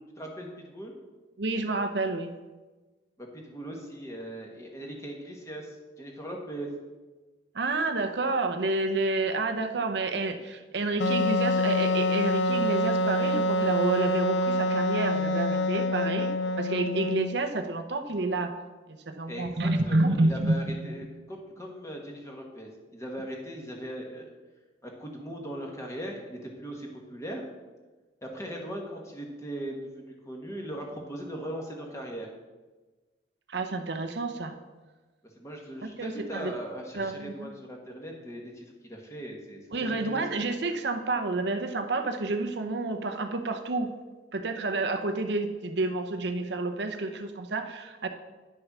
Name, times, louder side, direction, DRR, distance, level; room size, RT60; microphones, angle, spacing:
voice 1, 0.2-0.9 3.2-6.7 19.3-24.3 24.8-27.4 28.2-32.3 35.4-40.2, right 1 dB, 15° left, 0 dB, 1.5 m, -39 dB
voice 2, 1.4-2.3 7.5-16.3 16.6-18.5 18.9-20.9 33.5-34.5 36.0-36.5 36.9-37.5 39.7-43.9 44.3-48.1, right 2 dB, 65° right, 6 dB, 0.8 m, -29 dB
Wind instrument woodwind instrument, 11.0-17.4, left 1 dB, 70° left, 0.5 m, -26 dB
10.0 x 6.5 x 6.1 m, 1.3 s
head